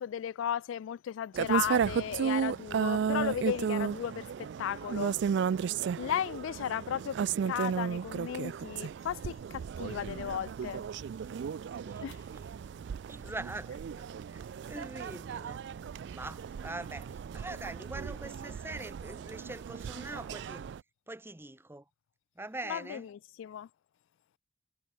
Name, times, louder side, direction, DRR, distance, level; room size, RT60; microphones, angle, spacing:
voice 1, 0.0-5.2 6.0-10.8 12.0-12.2 22.7-23.7, left 9 dB, 75° left, 0.3 m, -35 dB
sound 1, 1.3-20.8, right 7 dB, 60° right, 0.3 m, -34 dB
voice 2, 11.8-12.4 13.1-15.6 16.1-20.7 21.1-21.8 22.4-23.1, right 2 dB, 10° right, 0.9 m, -43 dB
head